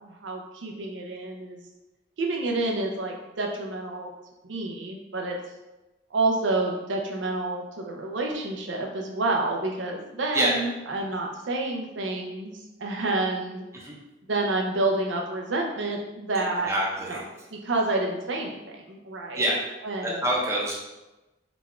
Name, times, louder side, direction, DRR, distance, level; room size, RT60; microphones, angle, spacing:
voice 1, 0.0-1.6 2.2-4.1 4.5-5.4 6.1-13.6 14.3-16.7 17.1-17.2 17.5-19.5 19.8-20.2, right 2 dB, 80° right, 0 dB, 0.6 m, -29 dB
voice 2, 16.7-17.2 19.4-19.6 20.0-20.7, right 1 dB, 15° right, -4 dB, 0.7 m, -26 dB
4.1 x 2.4 x 4.3 m, 1.0 s
head